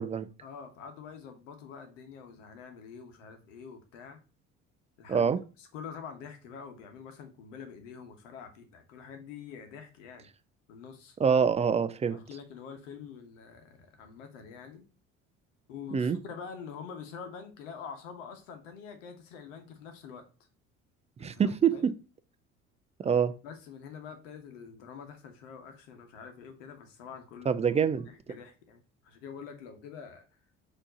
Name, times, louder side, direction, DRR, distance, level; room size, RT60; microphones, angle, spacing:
voice 1, 0.4-4.2 5.0-5.3 5.6-10.3 10.7-11.2 12.1-14.9 15.7-20.3 21.2-21.9 23.4-27.6 28.1-30.2, left 6 dB, 75° left, 1.1 m, -46 dB
voice 2, 5.1-5.4 11.2-12.2 15.9-16.2 21.2-21.9 23.0-23.3 27.5-28.1, right 6 dB, 20° right, 0.3 m, -25 dB
4.3 x 3.0 x 4.1 m
hypercardioid pair, 60°, 37 cm